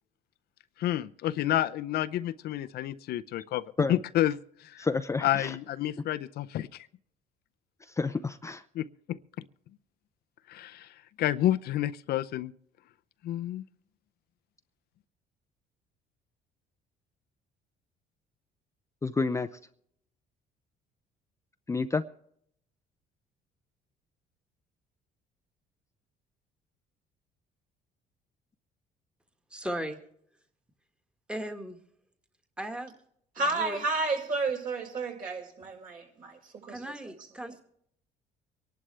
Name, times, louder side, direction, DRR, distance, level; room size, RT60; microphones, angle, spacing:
voice 1, 0.8-3.6 3.9-4.3 4.7-4.9 5.2-6.7 8.8-9.2 10.5-10.9 11.2-12.5 13.2-13.6, left 13 dB, 70° left, 0.6 m, -29 dB
voice 2, 4.8-5.6 8.0-8.6 19.0-19.5 21.7-22.0, left 4 dB, 15° left, 0.5 m, -29 dB
voice 3, 29.5-30.0 31.3-31.8 32.6-32.9 33.5-33.8 36.7-37.6, right 1 dB, 5° right, 1.6 m, -37 dB
voice 4, 33.3-36.4 36.7-36.8, right 3 dB, 55° right, 5.3 m, -31 dB
24.5 x 11.5 x 3.3 m
cardioid pair, 110°, 17 cm